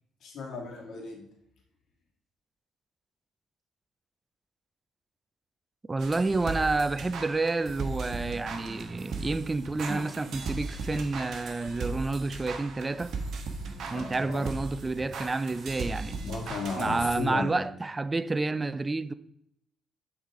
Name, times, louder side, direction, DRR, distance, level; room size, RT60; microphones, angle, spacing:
voice 1, 0.2-1.2 13.9-14.5 16.2-17.7, left 3 dB, 70° left, 2.0 m, -35 dB
voice 2, 5.9-13.1 13.9-16.2 16.8-19.1, right 3 dB, 25° right, 0.4 m, -29 dB
sound 1, 6.0-17.3, right 3 dB, 70° right, 1.2 m, -37 dB
7.1 x 4.0 x 4.8 m
cardioid pair, 90°, 0 cm